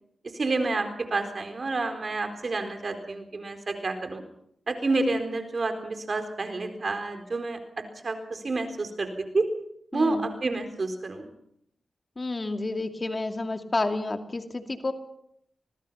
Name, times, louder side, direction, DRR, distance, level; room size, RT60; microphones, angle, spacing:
voice 1, 0.2-4.2 4.7-9.5 9.9-11.3, right 3 dB, 55° right, 6 dB, 4.2 m, -29 dB
voice 2, 9.9-10.3 12.2-14.9, left 2 dB, 40° left, 6 dB, 2.4 m, -30 dB
25.0 x 20.0 x 5.7 m, 0.73 s
cardioid pair, 45°, 0 cm